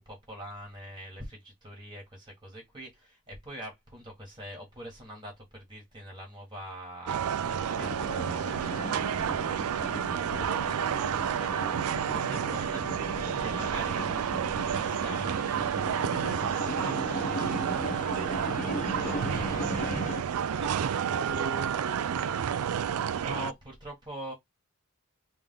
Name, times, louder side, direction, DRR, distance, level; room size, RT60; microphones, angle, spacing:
voice 1, 0.0-19.6 22.8-24.3, equal, 20° right, 1.6 m, -45 dB
sound 1, 7.1-23.5, right 8 dB, 80° right, 0.4 m, -30 dB
sound 2, 7.8-20.2, left 1 dB, 35° left, 0.7 m, -38 dB
voice 2, 20.5-22.6, right 1 dB, 55° right, 1.0 m, -40 dB
3.4 x 3.1 x 3.7 m
head